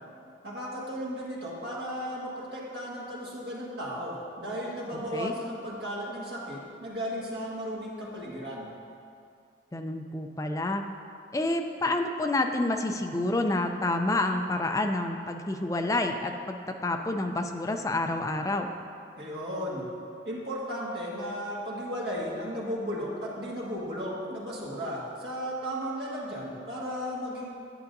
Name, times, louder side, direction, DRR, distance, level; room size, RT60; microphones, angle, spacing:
voice 1, 0.4-8.7 19.2-19.9 20.2-27.5, equal, 60° right, -5 dB, 1.8 m, -35 dB
voice 2, 4.9-5.3 9.7-10.8 11.3-18.7, left 2 dB, 20° left, 4 dB, 0.4 m, -29 dB
11.0 x 8.1 x 2.6 m, 2.5 s
head